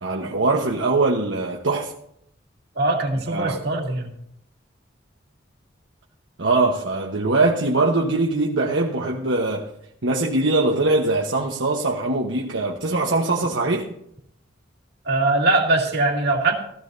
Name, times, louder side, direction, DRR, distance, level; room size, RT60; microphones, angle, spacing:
voice 1, 0.0-1.9 3.3-3.6 6.4-9.7 10.0-13.9, right 2 dB, 70° right, 1.1 m, -22 dB
voice 2, 2.8-4.1 15.0-16.5, right 2 dB, 55° right, 2.2 m, -21 dB
16.5 x 15.0 x 2.7 m
head